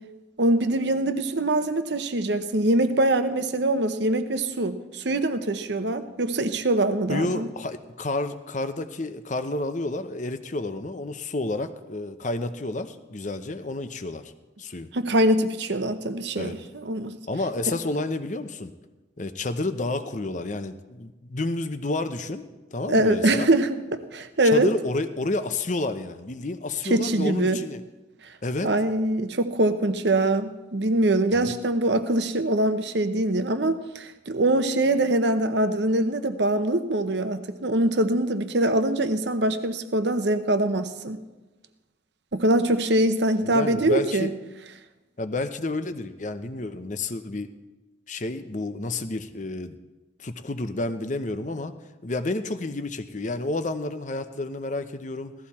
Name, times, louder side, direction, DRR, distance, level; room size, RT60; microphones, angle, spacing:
voice 1, 0.4-7.5 14.9-17.2 22.9-24.7 26.8-27.6 28.6-41.2 42.3-44.3, right 1 dB, 65° right, 9 dB, 0.9 m, -23 dB
voice 2, 7.1-14.3 14.6-14.9 16.4-16.6 17.3-18.7 19.2-22.5 22.7-23.5 24.5-27.8 28.4-28.7 31.3-31.5 43.4-44.3 45.2-47.5 48.1-49.8 50.2-51.7 52.0-55.3, left 2 dB, 40° left, 10 dB, 0.8 m, -30 dB
17.0 x 13.5 x 4.3 m, 1.1 s
head